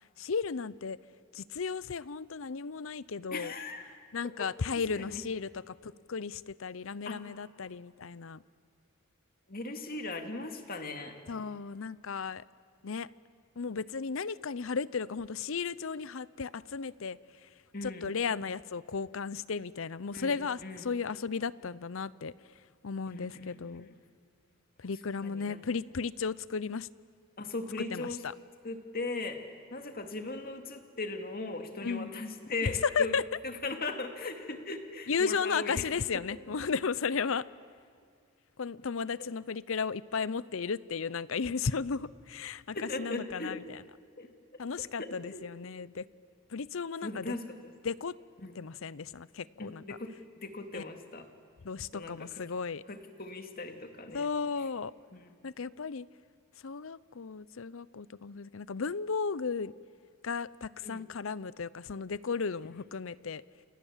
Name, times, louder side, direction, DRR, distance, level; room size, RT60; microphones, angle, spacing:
voice 1, 0.2-1.0 1.3-3.5 4.1-8.4 11.3-12.4 12.8-13.1 13.6-17.5 17.8-22.3 22.8-23.9 24.8-26.9 27.9-28.3 31.8-32.1 32.6-32.7 32.9-33.2 35.1-37.5 38.6-43.8 44.6-46.0 46.5-47.3 47.8-48.1 48.5-49.8 50.7-50.8 51.6-52.8 54.1-54.9 55.4-56.1 56.6-59.7 60.2-63.4, left 5 dB, 70° left, 19 dB, 0.6 m, -35 dB
voice 2, 3.3-3.9 4.4-4.5 5.0-5.2 7.1-7.2 9.5-11.2 17.7-18.1 20.1-20.9 23.1-23.6 23.9-24.0 25.2-25.6 27.4-28.2 28.6-29.4 29.7-33.2 33.4-35.9 39.2-39.3 42.7-43.6 44.2-44.3 44.8-45.4 47.0-47.7 48.4-48.5 49.6-50.1 50.4-51.3 51.9-52.3 52.9-54.3 55.1-55.4 60.8-61.0, left 3 dB, 45° left, 5 dB, 2.3 m, -38 dB
29.5 x 27.5 x 7.4 m, 2.2 s
head